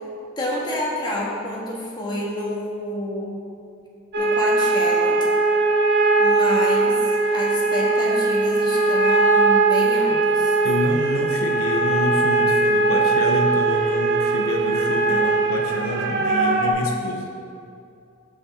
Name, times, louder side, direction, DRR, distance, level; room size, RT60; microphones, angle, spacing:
voice 1, 0.4-3.5 4.2-5.2 6.2-7.0 7.3-10.6, left 1 dB, 20° left, -4 dB, 1.5 m, -28 dB
sound 1, 4.1-16.7, right 3 dB, 55° right, 1.0 m, -20 dB
voice 2, 10.6-17.3, left 1 dB, 75° left, 3 dB, 0.6 m, -27 dB
5.8 x 5.6 x 6.8 m, 2.5 s
head